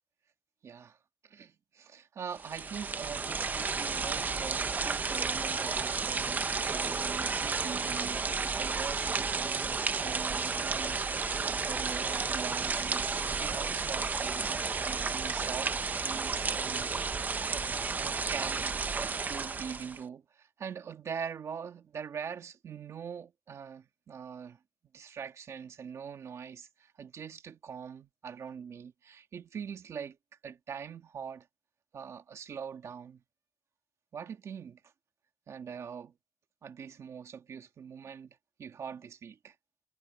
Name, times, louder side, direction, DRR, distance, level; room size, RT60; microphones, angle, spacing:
voice 1, 0.6-1.0 1.2-13.1 13.4-16.9 17.2-17.7 18.0-24.6 24.9-30.2 30.4-31.5 31.9-33.2 34.1-34.8 35.5-36.1 36.6-39.5, right 7 dB, 50° right, 2.1 m, -43 dB
sound 1, 2.4-20.0, right 4 dB, 25° right, 0.7 m, -32 dB
wide cardioid pair, 175°, 6 cm